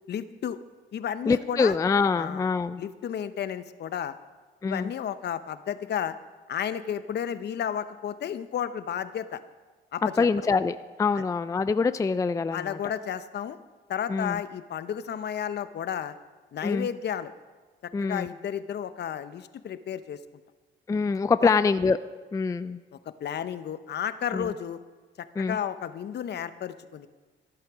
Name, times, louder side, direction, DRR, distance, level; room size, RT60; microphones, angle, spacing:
voice 1, 0.1-0.6 0.9-1.7 2.2-2.5 2.8-4.2 4.6-6.1 6.5-9.4 9.9-10.3 11.2-11.3 12.5-13.6 13.9-16.1 16.5-17.3 17.8-20.2 21.4-21.5 23.2-24.8 25.2-27.1, left 9 dB, 60° left, 13 dB, 0.7 m, -32 dB
voice 2, 1.3-2.8 4.6-4.9 10.2-12.8 14.1-14.4 16.6-16.9 17.9-18.3 20.9-22.0 22.3-22.8 24.3-24.5 25.4-25.6, left 4 dB, 15° left, 13 dB, 0.3 m, -25 dB
14.5 x 8.2 x 6.1 m, 1.4 s
cardioid pair, 90°, 20 cm